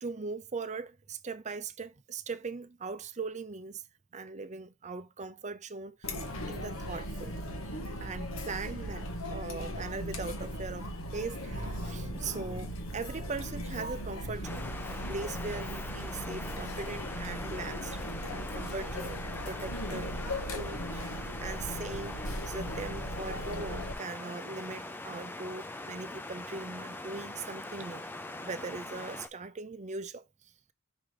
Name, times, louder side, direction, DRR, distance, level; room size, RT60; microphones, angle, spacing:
voice 1, 0.0-3.8 4.1-6.2 6.5-7.4 8.0-14.7 15.1-20.2 20.4-28.0 28.4-30.3, right 4 dB, 30° right, 0.6 m, -40 dB
Chatter, 6.0-23.9, equal, 65° left, 1.6 m, -38 dB
sound 1, 14.4-29.3, left 2 dB, 10° left, 0.5 m, -42 dB
5.9 x 3.8 x 5.0 m
head